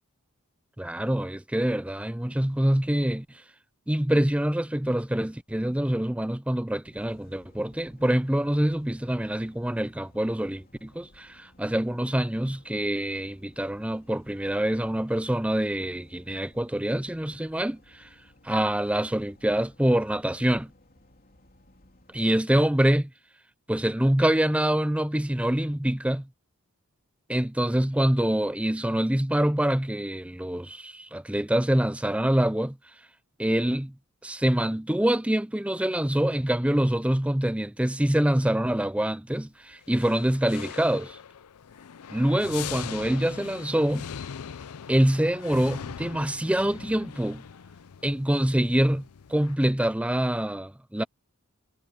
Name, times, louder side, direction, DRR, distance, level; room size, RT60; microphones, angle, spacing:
voice 1, 0.8-3.4 3.9-18.1 18.4-20.7 22.1-23.1 23.7-26.3 27.3-32.8 33.4-33.9 34.2-41.2 42.1-44.1 44.9-47.4 48.0-51.0, right 1 dB, 5° right, 0.4 m, -25 dB
sound 1, 6.8-22.2, left 1 dB, 40° left, 3.5 m, -58 dB
sound 2, 39.8-49.6, left 7 dB, 90° left, 0.5 m, -41 dB
head